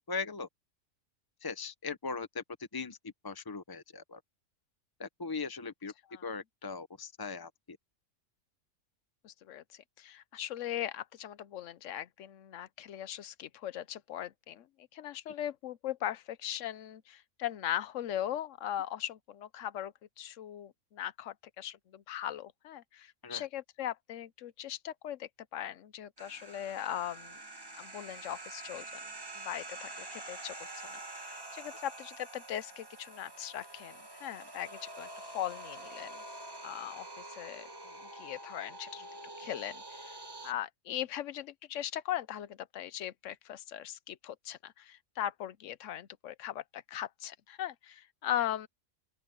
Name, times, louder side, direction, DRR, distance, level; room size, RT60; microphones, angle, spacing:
voice 1, 0.1-0.5 1.4-2.4 2.7-4.2 5.0-5.9 6.2-7.8 23.2-23.5, left 4 dB, 25° left, 0.5 m, -39 dB
voice 2, 9.2-14.7 14.9-27.4 27.8-35.1 35.3-36.1 36.6-39.1 39.4-40.2 40.4-48.7, left 11 dB, 70° left, 1.0 m, -39 dB
sound 1, 26.2-40.5, right 2 dB, 20° right, 1.4 m, -46 dB
open air
omnidirectional pair, 1.4 m